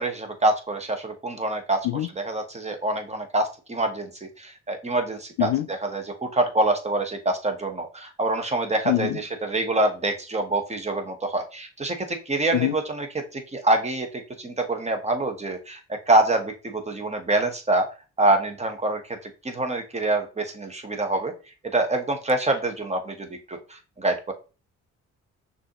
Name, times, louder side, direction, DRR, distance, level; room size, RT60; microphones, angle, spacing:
voice 1, 0.0-1.9 2.1-13.1 13.3-17.9 18.2-19.2 19.4-21.3 21.7-24.3, right 2 dB, 20° right, 1.1 m, -26 dB
voice 2, 8.9-9.2 12.5-12.7, left 15 dB, 80° left, 0.5 m, -23 dB
6.0 x 2.7 x 3.0 m
cardioid pair, 90°, 30 cm